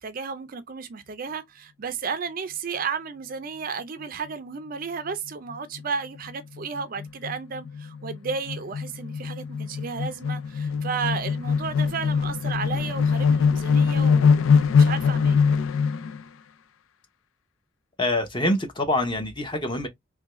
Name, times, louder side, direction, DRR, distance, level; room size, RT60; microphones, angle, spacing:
voice 1, 0.0-15.4, right 5 dB, 45° right, 0.4 m, -33 dB
sound 1, 5.5-5.8 6.2-6.3 6.5-16.2, left 5 dB, 85° left, 0.4 m, -23 dB
voice 2, 18.0-19.9, left 1 dB, 25° left, 0.8 m, -25 dB
3.5 x 2.2 x 2.9 m
head